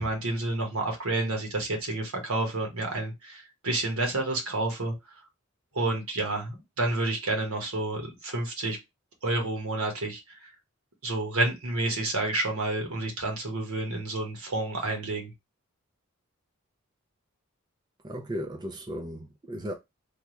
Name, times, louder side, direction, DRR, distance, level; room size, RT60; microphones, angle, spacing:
voice 1, 0.0-4.9 5.7-8.8 9.2-10.5 11.0-15.3, right 2 dB, 80° right, 1.3 m, -29 dB
voice 2, 18.0-19.7, equal, 20° right, 0.4 m, -35 dB
3.4 x 2.3 x 3.0 m
head